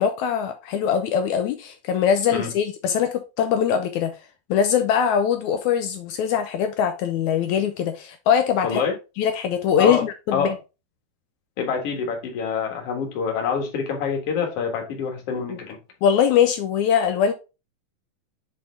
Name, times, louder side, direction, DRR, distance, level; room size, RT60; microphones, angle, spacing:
voice 1, 0.0-4.1 4.5-8.8 9.2-10.6 15.5-15.6 16.0-17.3, left 8 dB, 75° left, 7 dB, 1.8 m, -22 dB
voice 2, 8.6-8.9 9.8-10.0 10.3-10.5 11.6-15.8, left 6 dB, 50° left, 2 dB, 2.3 m, -26 dB
6.6 x 4.3 x 3.4 m, 0.28 s
omnidirectional pair, 3.9 m